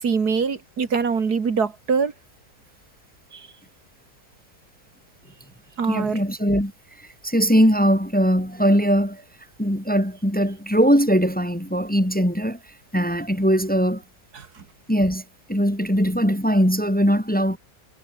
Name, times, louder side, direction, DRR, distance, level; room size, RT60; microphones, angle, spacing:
voice 1, 0.0-2.1 3.3-3.5 5.8-6.2 14.4-14.5, right 5 dB, 70° right, 2.6 m, -23 dB
voice 2, 5.9-6.7 7.2-9.2 9.6-12.6 12.9-14.0 14.9-15.2 15.5-17.6, equal, 5° left, 1.9 m, -20 dB
omnidirectional pair, 1.7 m